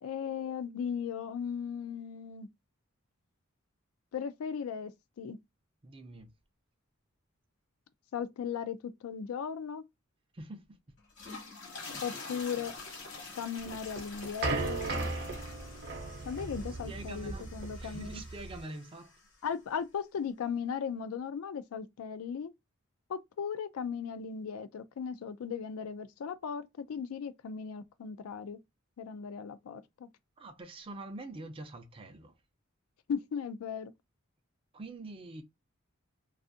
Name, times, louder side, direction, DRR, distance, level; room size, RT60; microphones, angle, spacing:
voice 1, 0.0-2.5 4.1-5.4 8.1-9.8 12.0-12.7 13.3-14.8 16.3-18.2 19.4-22.5 23.1-28.6 29.0-30.1 33.1-33.9, left 7 dB, 85° left, 0.3 m, -37 dB
voice 2, 5.8-6.3 10.3-10.8 11.9-12.0 16.6-19.2 30.4-32.4 34.7-35.4, right 2 dB, 25° right, 0.4 m, -45 dB
sound 1, 11.0-19.3, left 3 dB, 60° left, 1.1 m, -47 dB
sound 2, 13.7-18.6, right 3 dB, 50° right, 0.7 m, -37 dB
2.4 x 2.4 x 2.5 m
head